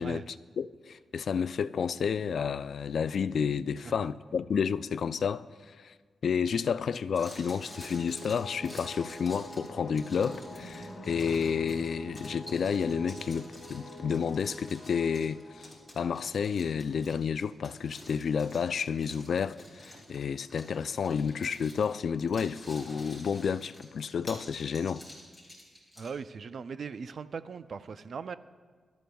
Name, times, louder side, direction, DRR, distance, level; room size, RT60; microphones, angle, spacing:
voice 1, 0.0-5.9 6.2-25.0, left 6 dB, 65° left, 0.3 m, -31 dB
sound 1, 7.1-26.2, left 1 dB, ahead, 4.0 m, -49 dB
sound 2, 7.6-16.0, equal, 35° left, 3.4 m, -46 dB
voice 2, 26.0-28.4, right 5 dB, 60° right, 0.4 m, -39 dB
22.0 x 13.0 x 2.3 m
wide cardioid pair, 105°, 0 cm